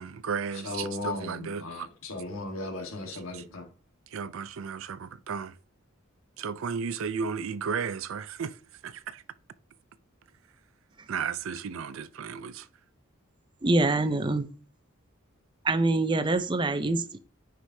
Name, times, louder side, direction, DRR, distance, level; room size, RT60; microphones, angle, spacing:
voice 1, 0.0-1.9 3.1-3.4 4.1-5.6 6.4-9.2 11.1-12.7, right 6 dB, 75° right, 0.5 m, -34 dB
voice 2, 0.6-3.7, left 2 dB, 80° left, 1.5 m, -36 dB
voice 3, 13.6-14.5 15.6-17.2, right 2 dB, 25° right, 0.5 m, -25 dB
9.5 x 4.9 x 2.7 m
head